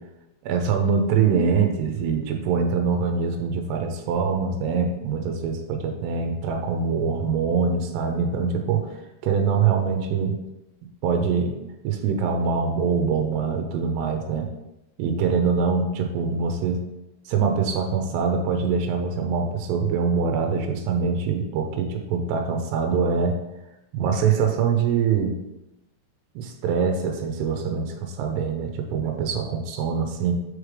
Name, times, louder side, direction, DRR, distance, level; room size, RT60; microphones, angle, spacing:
voice 1, 0.4-10.4 11.0-11.5 11.8-14.5 15.0-16.8 17.3-23.4 23.9-25.4 26.4-30.3, right 5 dB, 90° right, 4 dB, 2.8 m, -24 dB
6.7 x 4.9 x 3.3 m, 0.92 s
omnidirectional pair, 4.7 m